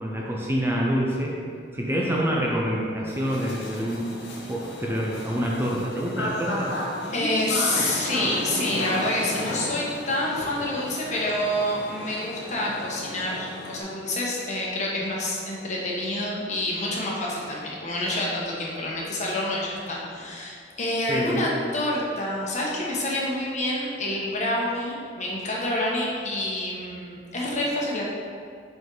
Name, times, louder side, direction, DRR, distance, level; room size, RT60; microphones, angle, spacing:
voice 1, 0.0-1.4 1.7-4.1 4.5-6.8 21.1-21.5, equal, 15° right, -3 dB, 0.6 m, -26 dB
sound 1, 3.1-13.8, left 1 dB, 80° left, 1.1 m, -34 dB
voice 2, 7.1-28.0, left 1 dB, 40° left, -3 dB, 1.1 m, -28 dB
5.5 x 5.4 x 3.9 m, 2.3 s
head